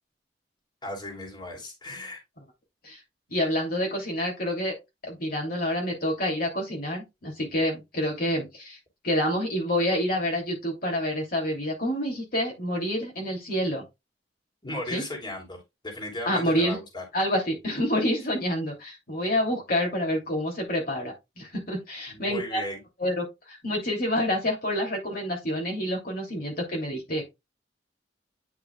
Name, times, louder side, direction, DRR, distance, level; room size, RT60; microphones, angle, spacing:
voice 1, 0.8-2.2 14.6-17.0 22.1-22.8, left 1 dB, 25° left, 3.1 m, -36 dB
voice 2, 3.3-4.7 5.0-8.8 9.0-13.8 14.9-15.0 16.2-16.8 17.1-22.6 23.0-27.2, equal, 55° left, 2.8 m, -28 dB
9.6 x 5.7 x 2.3 m
head